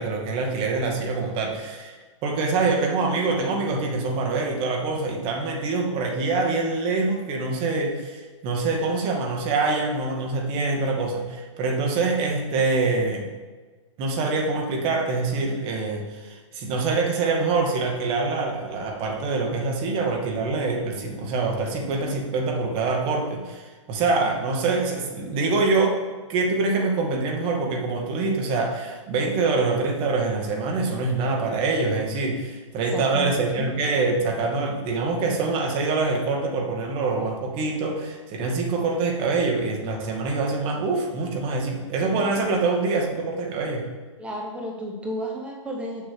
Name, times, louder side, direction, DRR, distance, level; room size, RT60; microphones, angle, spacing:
voice 1, 0.0-2.0 2.2-13.3 14.0-26.0 26.3-43.8, right 3 dB, 35° right, 1 dB, 2.0 m, -25 dB
voice 2, 32.9-33.6 42.1-42.3 42.6-42.8 44.2-46.1, equal, 5° right, -1 dB, 1.1 m, -33 dB
7.1 x 6.0 x 6.7 m, 1.4 s
hypercardioid pair, 125°, 16 cm